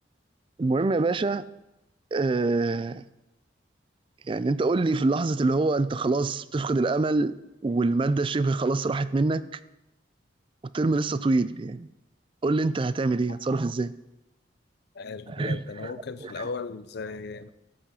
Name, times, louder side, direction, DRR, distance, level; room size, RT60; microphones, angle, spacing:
voice 1, 0.6-1.5 2.1-3.0 4.3-7.4 7.6-9.4 10.7-11.9 12.4-13.9 15.3-15.9 16.2-16.4, right 3 dB, 25° right, 0.3 m, -25 dB
voice 2, 14.9-17.5, left 4 dB, 55° left, 0.5 m, -36 dB
13.0 x 5.9 x 5.6 m
head